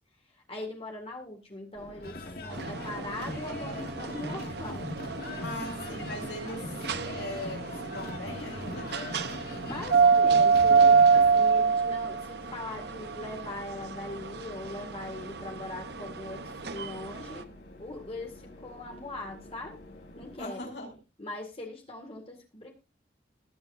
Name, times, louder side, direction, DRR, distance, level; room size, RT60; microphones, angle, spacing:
voice 1, 0.3-4.9 9.6-17.5 17.8-19.8 20.2-20.7 21.2-22.7, left 2 dB, 30° left, 1 dB, 2.0 m, -41 dB
sound 1, 1.7-20.4, left 1 dB, 75° left, 5.7 m, -49 dB
sound 2, 2.0-11.4, left 1 dB, 55° left, 1.9 m, -40 dB
sound 3, 2.5-17.4, right 5 dB, 65° right, 0.8 m, -27 dB
voice 2, 5.4-6.7 7.1-8.9 20.4-20.9, left 1 dB, 90° left, 0 dB, 7.3 m, -39 dB
20.0 x 8.0 x 2.6 m, 0.27 s
head